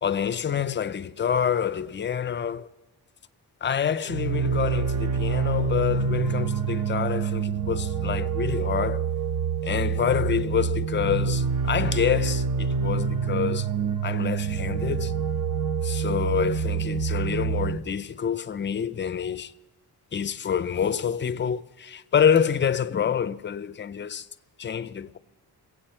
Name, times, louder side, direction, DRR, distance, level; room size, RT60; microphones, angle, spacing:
voice 1, 0.0-2.7 3.6-9.0 9.6-13.7 14.0-15.1 15.8-19.5 20.1-24.3 24.6-25.2, left 8 dB, 30° left, 0.4 m, -27 dB
sound 1, 4.1-17.8, right 6 dB, 55° right, 0.8 m, -26 dB
22.5 x 8.5 x 4.3 m
cardioid pair, 125°, 39 cm